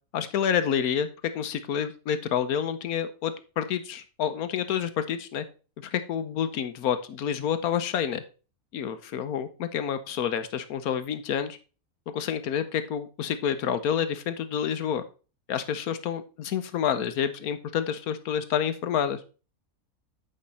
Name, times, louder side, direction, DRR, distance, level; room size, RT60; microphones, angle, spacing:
voice 1, 0.1-1.1 1.3-5.4 5.8-8.2 8.7-11.6 12.1-15.0 15.5-19.2, left 8 dB, 85° left, 11 dB, 1.3 m, -28 dB
8.6 x 5.1 x 4.1 m, 0.34 s
omnidirectional pair, 1.5 m